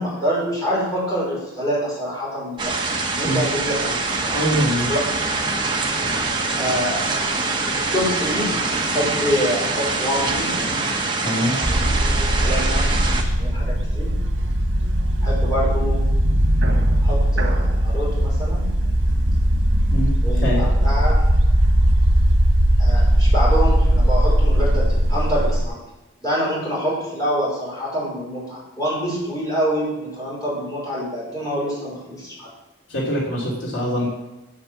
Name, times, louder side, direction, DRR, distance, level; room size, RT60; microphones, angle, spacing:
voice 1, 0.0-2.8 3.1-4.4 4.8-5.0 6.6-7.0 7.8-8.6 8.8-10.6 11.5-11.9 12.1-13.0 13.3-14.1 15.2-16.1 17.0-18.7 20.2-21.1 22.8-25.8 26.2-32.5, equal, 20° left, -6 dB, 5.2 m, -26 dB
sound 1, 2.6-13.2, right 3 dB, 25° right, 1.3 m, -24 dB
voice 2, 4.3-4.9 11.2-11.6 19.9-20.1 20.4-20.6 32.9-34.1, equal, 70° left, -4 dB, 3.2 m, -23 dB
sound 2, 11.6-25.6, equal, 80° right, 1.6 m, -18 dB
8.8 x 8.5 x 7.3 m, 1.0 s
head